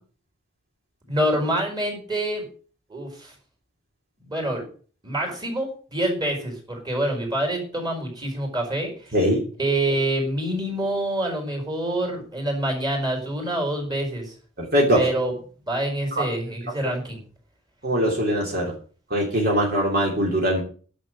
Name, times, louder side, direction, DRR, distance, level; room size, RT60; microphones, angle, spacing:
voice 1, 1.1-2.5 2.9-3.3 4.2-4.6 5.0-9.2 9.6-14.3 14.9-15.3 15.7-17.2, right 1 dB, 20° right, 2 dB, 4.5 m, -26 dB
voice 2, 14.6-15.0 16.2-16.3 17.8-18.7 19.1-20.6, equal, 50° right, -2 dB, 3.2 m, -21 dB
11.0 x 6.4 x 7.7 m, 0.42 s
head